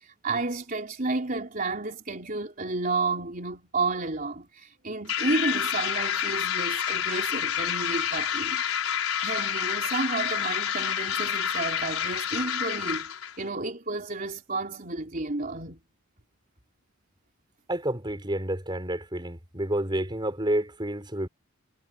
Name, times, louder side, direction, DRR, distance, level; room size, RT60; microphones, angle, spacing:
voice 1, 0.0-8.6 9.2-15.8, right 3 dB, 40° right, 3.8 m, -31 dB
sound 1, 5.1-13.4, left 9 dB, 90° left, 5.0 m, -28 dB
voice 2, 17.7-21.3, right 1 dB, 20° right, 5.0 m, -29 dB
head